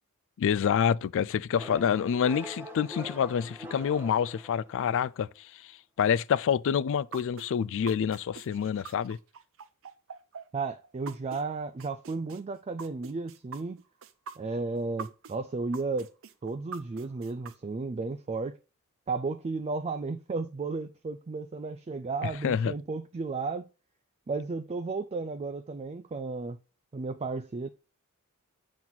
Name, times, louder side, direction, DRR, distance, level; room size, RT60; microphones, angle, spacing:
voice 1, 0.4-5.7 6.0-9.2 22.2-22.7, left 7 dB, 60° left, 0.3 m, -27 dB
sound 1, 1.5-5.0, equal, 10° right, 1.0 m, -43 dB
sound 2, 7.1-11.4 11.8-15.4 15.7-17.5, right 6 dB, 65° right, 0.7 m, -43 dB
voice 2, 10.5-13.8 14.4-16.1 16.4-18.6 19.1-23.7 24.3-26.6 26.9-27.7, right 3 dB, 30° right, 0.3 m, -33 dB
7.6 x 3.9 x 4.2 m
head